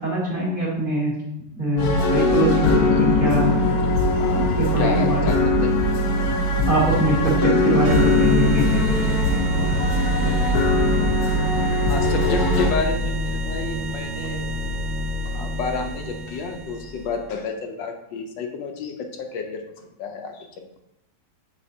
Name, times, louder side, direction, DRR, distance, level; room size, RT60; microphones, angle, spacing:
voice 1, 0.0-1.1 1.6-3.7 4.3-5.4 6.7-8.9, right 1 dB, 25° right, -6 dB, 1.9 m, -23 dB
sound 1, 1.8-12.7, left 2 dB, 60° left, 1.1 m, -20 dB
voice 2, 4.8-5.5 6.2-6.3 11.9-14.5 15.2-20.8, left 4 dB, 80° left, 4 dB, 1.3 m, -30 dB
sound 2, 7.8-17.3, equal, 75° right, 1.2 m, -28 dB
6.6 x 5.5 x 2.7 m, 0.86 s
omnidirectional pair, 2.1 m